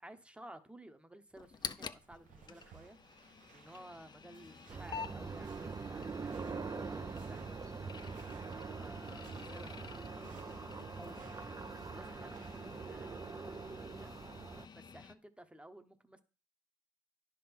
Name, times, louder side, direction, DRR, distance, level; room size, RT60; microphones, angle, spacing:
voice 1, 0.0-3.0 3.5-8.0 8.5-10.6 11.0-11.4 11.9-14.2 14.7-16.2, right 1 dB, 10° right, 1.0 m, -55 dB
sound 1, 1.3-15.1, left 6 dB, 30° left, 0.5 m, -50 dB
sound 2, 1.4-12.9, right 7 dB, 65° right, 1.0 m, -64 dB
sound 3, 4.7-14.7, right 5 dB, 25° right, 0.5 m, -44 dB
10.0 x 3.8 x 6.0 m
supercardioid pair, 85°, 14 cm